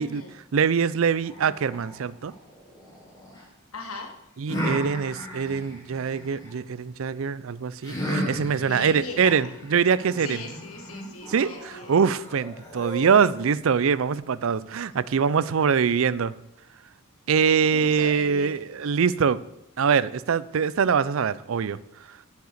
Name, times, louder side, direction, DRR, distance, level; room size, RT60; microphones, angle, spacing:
voice 1, 0.0-0.3 3.7-4.1 8.7-9.4 10.2-11.9 17.8-18.6, left 3 dB, 90° left, 4 dB, 1.4 m, -38 dB
voice 2, 0.5-2.3 4.4-10.5 11.3-16.3 17.3-19.4 19.8-21.8, right 6 dB, 70° right, 18 dB, 0.4 m, -23 dB
sound 1, 1.2-3.4 4.5-6.5 7.8-13.4, equal, 15° left, 3.8 m, -35 dB
9.6 x 6.6 x 6.6 m, 0.84 s
head